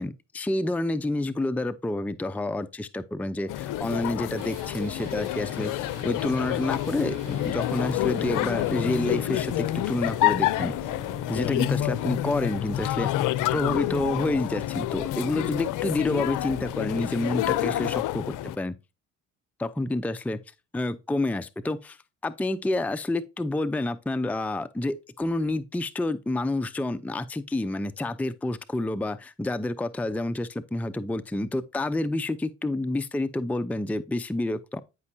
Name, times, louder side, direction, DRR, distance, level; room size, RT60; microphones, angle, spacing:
voice 1, 0.0-10.9 11.3-13.1 13.5-18.8 19.6-20.4 20.7-22.0 22.2-34.8, left 2 dB, 5° left, 0.5 m, -29 dB
sound 1, 3.5-18.6, left 14 dB, 65° left, 0.6 m, -28 dB
sound 2, 4.4-13.8, right 10 dB, 70° right, 1.6 m, -48 dB
9.5 x 5.3 x 2.7 m
hypercardioid pair, 60°, 33 cm